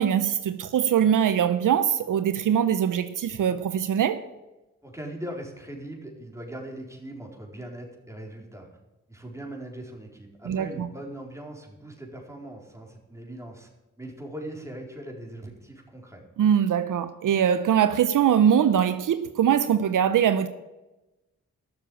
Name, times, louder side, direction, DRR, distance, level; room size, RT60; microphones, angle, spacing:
voice 1, 0.0-4.2 10.5-10.9 16.4-20.5, right 9 dB, 80° right, 0.7 m, -22 dB
voice 2, 4.8-8.7 9.1-13.7 14.0-16.2, right 1 dB, 10° right, 4.2 m, -40 dB
13.0 x 7.0 x 8.8 m
cardioid pair, 45°, 31 cm